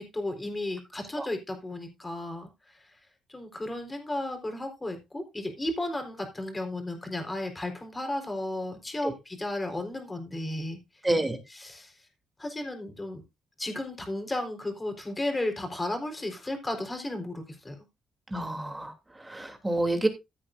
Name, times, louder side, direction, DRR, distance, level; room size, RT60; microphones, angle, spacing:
voice 1, 0.0-2.8 3.3-10.8 11.5-11.9 12.4-13.2 13.6-17.8, left 1 dB, 20° left, 5 dB, 4.2 m, -34 dB
voice 2, 11.0-11.4 18.3-20.1, right 1 dB, 15° right, 5 dB, 3.0 m, -28 dB
15.5 x 8.6 x 2.6 m, 0.23 s
cardioid pair, 90°, 0 cm